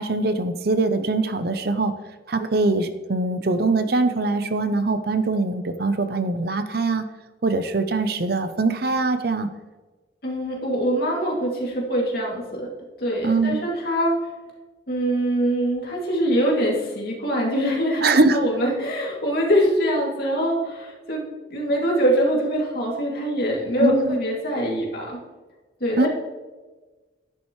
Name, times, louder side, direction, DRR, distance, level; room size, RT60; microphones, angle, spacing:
voice 1, 0.0-1.9 2.3-7.1 7.4-9.5 13.2-13.6 18.0-18.5 23.8-24.2 26.0-26.1, right 3 dB, 50° right, 10 dB, 0.6 m, -22 dB
voice 2, 10.2-12.7 13.0-14.2 14.9-25.2 25.8-26.1, equal, 50° left, -2 dB, 2.6 m, -23 dB
10.5 x 10.5 x 3.2 m, 1.2 s
head